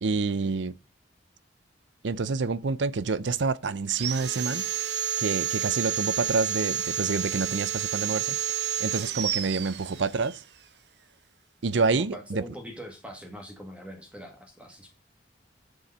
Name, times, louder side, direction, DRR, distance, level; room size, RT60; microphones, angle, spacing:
voice 1, 0.0-0.7 2.0-4.7 5.2-8.4 8.8-10.4 11.6-12.4, right 4 dB, 85° right, 0.6 m, -28 dB
Sawing, 3.9-10.4, right 9 dB, 70° right, 0.9 m, -30 dB
voice 2, 11.9-14.9, equal, 5° right, 1.7 m, -42 dB
7.7 x 6.9 x 5.5 m
head